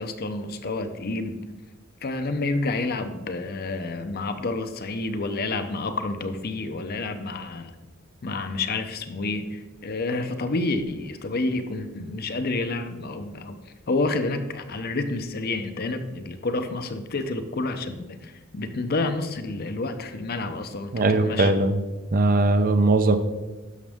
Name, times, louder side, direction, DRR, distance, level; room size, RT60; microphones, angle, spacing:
voice 1, 0.0-1.4 2.0-7.7 8.2-13.6 13.9-21.5, left 2 dB, 45° left, 8 dB, 0.6 m, -29 dB
voice 2, 20.9-21.8 22.1-23.2, right 2 dB, 40° right, 9 dB, 0.6 m, -20 dB
11.0 x 6.2 x 3.5 m, 1.1 s
head